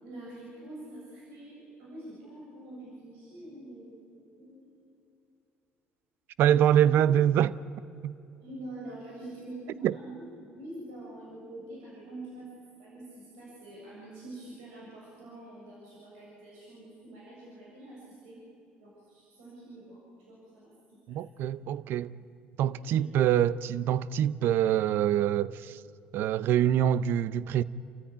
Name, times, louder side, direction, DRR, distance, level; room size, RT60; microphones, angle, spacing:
voice 1, 0.0-4.9 6.7-7.1 8.4-10.2 10.5-12.5 12.8-18.4 18.8-21.2 22.7-23.1, right 1 dB, 90° right, 7.4 m, -46 dB
voice 2, 6.4-7.5 8.0-8.1 9.8-10.0 21.1-22.1 22.6-25.8 26.1-27.6, right 10 dB, 70° right, 0.6 m, -25 dB
29.0 x 14.0 x 10.0 m
supercardioid pair, 85°, 4 cm